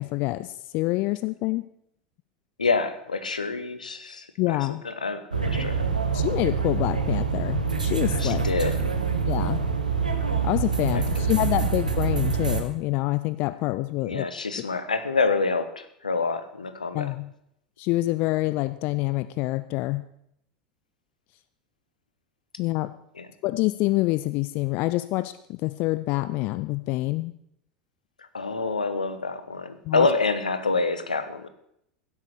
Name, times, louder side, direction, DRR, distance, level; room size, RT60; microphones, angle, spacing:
voice 1, 0.0-1.6 4.4-4.8 6.1-8.4 9.2-9.6 10.4-14.3 14.6-14.7 16.9-17.3 17.8-20.0 22.6-22.9 23.4-27.3 29.8-30.1, left 19 dB, 45° left, 14 dB, 0.5 m, -26 dB
voice 2, 2.6-4.6 4.8-5.8 8.2-8.8 10.9-11.0 14.0-17.1 23.2-23.3 28.3-31.5, left 4 dB, 80° left, 12 dB, 1.1 m, -27 dB
sound 1, 5.3-12.6, right 5 dB, 85° right, 1.5 m, -25 dB
16.0 x 8.2 x 6.4 m, 0.74 s
figure-of-eight pair, 80°, 4 cm